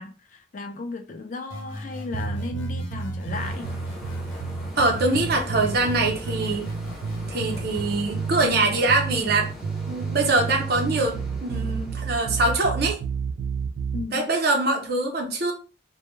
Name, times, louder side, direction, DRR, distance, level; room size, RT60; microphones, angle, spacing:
voice 1, 0.0-3.7 5.5-5.6 13.9-14.3, left 3 dB, 40° left, 0.3 m, -35 dB
sound 1, 1.5-4.5 4.9-7.9, left 1 dB, 75° left, 0.6 m, -41 dB
sound 2, 2.1-14.1, right 5 dB, 85° right, 0.3 m, -31 dB
sound 3, 3.3-13.8, left 1 dB, 5° right, 0.6 m, -42 dB
voice 2, 4.8-6.7 7.3-9.5 9.9-13.0 14.1-15.5, right 2 dB, 55° right, 0.6 m, -23 dB
2.2 x 2.1 x 3.0 m
head